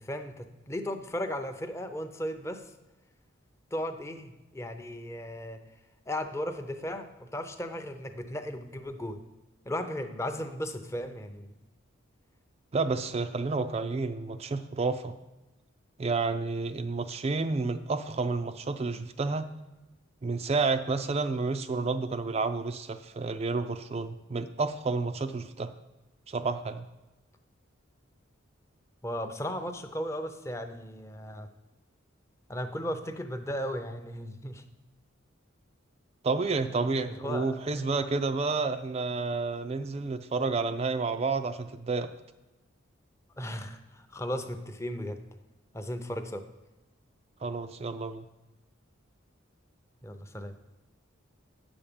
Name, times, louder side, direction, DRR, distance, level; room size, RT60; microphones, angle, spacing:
voice 1, 0.0-2.6 3.7-5.6 6.1-9.2 9.7-11.5 29.0-31.5 32.5-34.6 37.1-37.8 43.4-45.2 45.7-46.4 50.0-50.5, equal, 15° left, 7 dB, 0.6 m, -36 dB
voice 2, 12.7-15.1 16.0-19.5 20.2-25.7 26.3-26.9 36.2-42.1 47.4-48.3, right 3 dB, 30° right, 9 dB, 0.3 m, -30 dB
9.2 x 7.1 x 5.2 m, 1.0 s
head